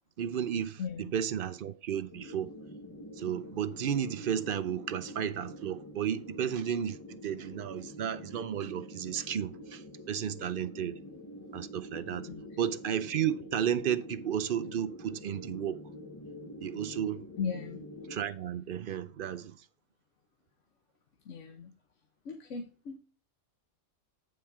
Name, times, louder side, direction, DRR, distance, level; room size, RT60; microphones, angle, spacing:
voice 1, 0.2-2.5 3.2-7.0 7.2-11.0 11.5-12.3 12.6-15.8 16.6-17.2 18.1-19.6, right 9 dB, 55° right, 0.7 m, -33 dB
voice 2, 0.8-1.1 12.3-12.6 17.4-17.8 21.2-21.7 22.2-23.0, left 6 dB, 75° left, 1.2 m, -38 dB
sound 1, 2.1-18.2, left 1 dB, 20° left, 0.8 m, -46 dB
9.4 x 4.4 x 4.7 m
omnidirectional pair, 1.3 m